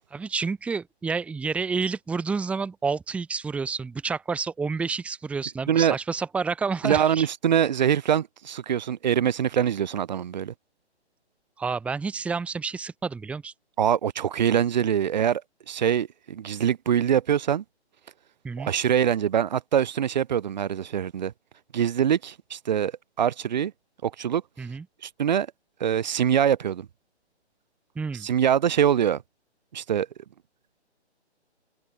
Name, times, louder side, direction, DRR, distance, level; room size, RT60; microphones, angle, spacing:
voice 1, 0.1-7.3 11.6-13.5 18.4-18.7 24.6-24.8 27.9-28.3, right 5 dB, 5° right, 1.4 m, -29 dB
voice 2, 6.8-10.5 13.8-15.4 15.7-17.6 18.6-21.3 21.7-22.9 23.2-23.7 24.0-24.4 25.0-25.5 25.8-26.9 28.2-29.2 29.7-30.1, right 9 dB, 40° right, 1.2 m, -24 dB
open air
figure-of-eight pair, 145°, 34 cm